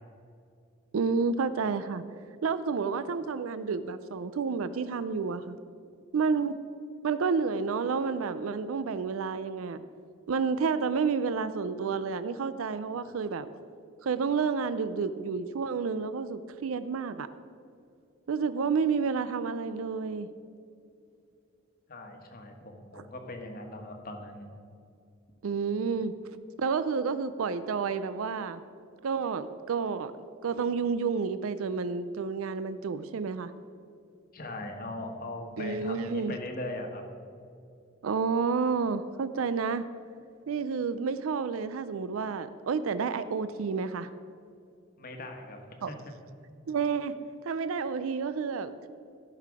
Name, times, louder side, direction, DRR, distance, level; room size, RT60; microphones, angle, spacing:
voice 1, 0.9-2.0 2.4-5.6 6.1-6.5 7.0-9.8 10.3-13.5 14.0-17.3 18.3-20.3 25.4-26.1 26.6-28.6 29.0-30.1 30.4-33.5 35.6-36.4 38.0-39.8 40.5-44.1 45.8-45.9 46.7-47.1 47.4-48.9, right 5 dB, 85° right, 13 dB, 0.4 m, -30 dB
voice 2, 21.9-24.5 34.3-37.0 45.0-46.0, left 1 dB, 45° left, 3 dB, 1.3 m, -40 dB
15.0 x 5.7 x 4.8 m, 2.5 s
head